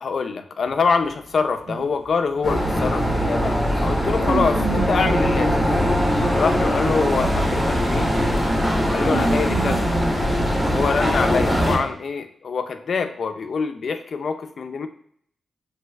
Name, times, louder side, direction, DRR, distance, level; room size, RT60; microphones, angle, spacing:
voice 1, 0.0-5.6 6.3-8.1 8.9-9.9 10.7-14.9, left 5 dB, 60° left, 8 dB, 0.3 m, -25 dB
sound 1, 0.6-7.3 7.7-8.0 8.3-10.9 11.5-11.8, right 3 dB, 80° right, 0.7 m, -31 dB
sound 2, 2.4-11.8, equal, 10° left, 1.0 m, -21 dB
sound 3, 6.0-11.0, right 1 dB, 40° right, 0.9 m, -37 dB
3.1 x 3.1 x 2.3 m, 0.63 s
cardioid pair, 85°, 0 cm